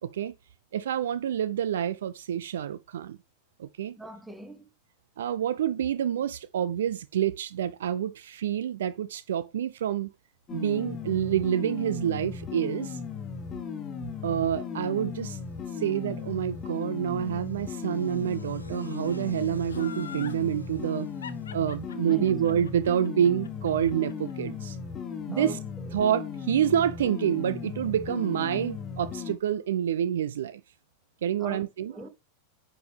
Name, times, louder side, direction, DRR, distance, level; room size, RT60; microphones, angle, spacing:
voice 1, 0.0-0.3 0.7-3.2 3.6-4.0 5.2-10.1 10.5-13.0 14.2-15.4 15.8-21.1 21.5-24.8 25.3-25.6 25.9-30.6 31.2-31.9, right 10 dB, 60° right, 0.4 m, -28 dB
voice 2, 3.9-4.7 22.1-22.3 25.3-26.0 31.4-31.6 31.9-32.1, equal, 5° right, 1.2 m, -41 dB
sound 1, 10.5-29.4, left 6 dB, 25° left, 1.3 m, -37 dB
sound 2, 12.7-30.1, left 1 dB, 90° left, 1.0 m, -55 dB
Laughter, 19.7-20.4 21.2-24.3 24.7-24.8, left 7 dB, 65° left, 0.6 m, -43 dB
9.3 x 4.5 x 3.4 m
figure-of-eight pair, 90°, 0 cm